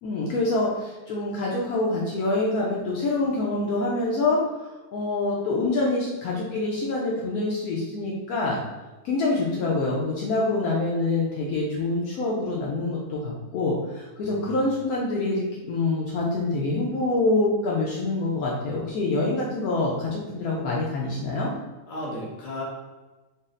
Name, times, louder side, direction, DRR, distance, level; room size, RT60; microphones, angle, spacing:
voice 1, 0.0-8.6 9.0-21.5, left 2 dB, 75° left, -4 dB, 1.1 m, -26 dB
voice 2, 14.2-14.7 21.9-22.6, left 1 dB, 45° left, -4 dB, 1.2 m, -35 dB
4.1 x 2.0 x 3.7 m, 1.2 s
omnidirectional pair, 1.6 m